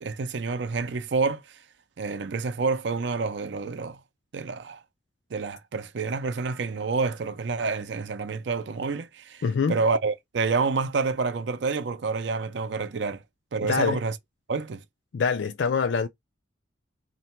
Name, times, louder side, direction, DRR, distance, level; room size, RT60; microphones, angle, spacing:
voice 1, 0.0-1.6 2.0-4.0 4.3-4.8 5.3-13.2 13.5-14.2 14.5-14.8, right 4 dB, 70° right, 0.5 m, -28 dB
voice 2, 9.4-9.8 13.6-14.0 15.1-16.1, left 5 dB, 75° left, 0.4 m, -24 dB
3.9 x 2.1 x 4.3 m
head